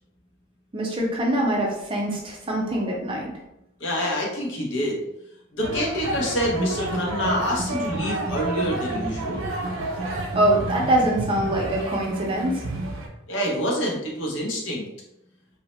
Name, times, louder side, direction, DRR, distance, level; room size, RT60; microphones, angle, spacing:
voice 1, 0.7-3.3 10.3-12.6, right 1 dB, 25° right, -2 dB, 0.5 m, -23 dB
voice 2, 3.8-5.0 5.5-9.4 13.3-14.9, equal, 65° left, -3 dB, 0.7 m, -26 dB
sound 1, 5.6-13.1, right 2 dB, 75° right, 0.5 m, -30 dB
2.7 x 2.0 x 3.0 m, 0.86 s
head